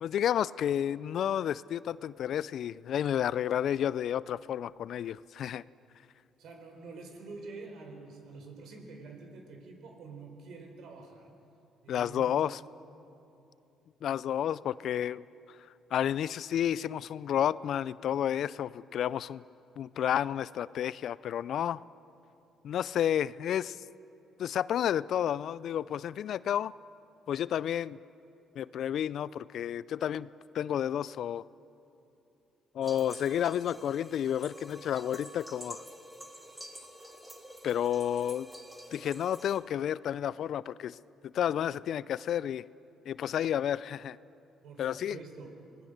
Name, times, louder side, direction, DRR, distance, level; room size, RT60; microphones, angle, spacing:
voice 1, 0.0-5.6 11.9-12.6 14.0-15.2 15.5-15.6 15.9-19.4 19.8-21.8 22.6-23.8 24.4-26.7 27.3-28.0 28.6-30.3 30.5-31.4 32.7-35.8 37.6-38.5 38.9-41.0 41.2-42.6 43.0-44.2 44.8-45.2, left 10 dB, 65° left, 19 dB, 0.4 m, -31 dB
voice 2, 6.4-11.3 11.8-12.4 44.6-45.7, right 3 dB, 70° right, 4 dB, 4.0 m, -47 dB
sound 1, 32.8-39.6, equal, 10° right, 3.0 m, -48 dB
26.0 x 19.0 x 6.6 m, 2.8 s
supercardioid pair, 60°, 0 cm